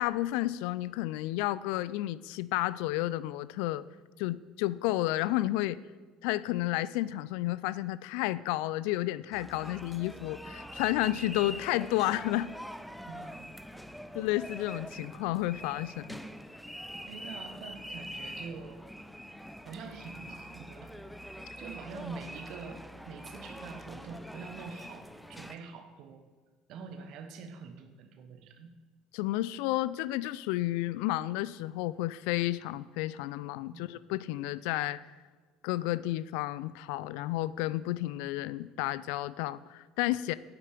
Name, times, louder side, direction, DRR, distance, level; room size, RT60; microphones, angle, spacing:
voice 1, 0.0-3.8 4.2-5.8 6.2-12.5 14.1-16.2 29.1-35.0 35.6-40.3, left 16 dB, 65° left, 17 dB, 0.3 m, -31 dB
sound 1, 9.3-25.6, equal, 5° left, 0.7 m, -44 dB
voice 2, 13.0-13.5 17.1-18.8 19.6-21.0 21.6-26.2 26.7-28.7 33.7-33.9, right 5 dB, 55° right, 7 dB, 1.2 m, -45 dB
9.0 x 8.9 x 5.1 m, 1.4 s
figure-of-eight pair, 65°, 0 cm